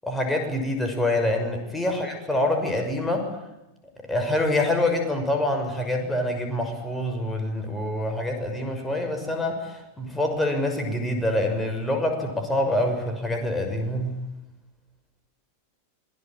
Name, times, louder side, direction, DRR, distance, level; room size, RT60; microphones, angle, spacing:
voice 1, 0.0-3.3 4.1-14.2, left 1 dB, 5° left, 4 dB, 6.4 m, -26 dB
27.0 x 23.0 x 9.1 m, 0.93 s
figure-of-eight pair, 90°, 0 cm